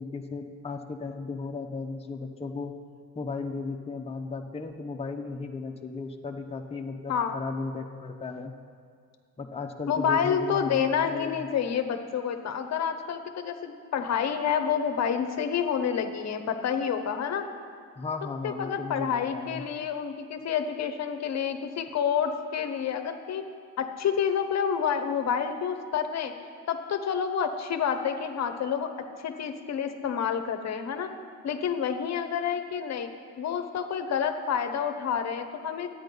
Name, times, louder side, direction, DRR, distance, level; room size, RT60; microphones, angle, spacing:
voice 1, 0.0-2.7 3.1-8.5 9.4-11.4 18.0-19.6, left 4 dB, 20° left, 2 dB, 0.8 m, -35 dB
voice 2, 9.9-17.4 18.4-23.4 23.8-26.3 26.7-28.9 29.2-31.1 31.4-33.1 33.4-35.9, left 7 dB, 55° left, 7 dB, 0.9 m, -28 dB
12.0 x 9.3 x 5.3 m, 2.1 s
cardioid pair, 95°, 33 cm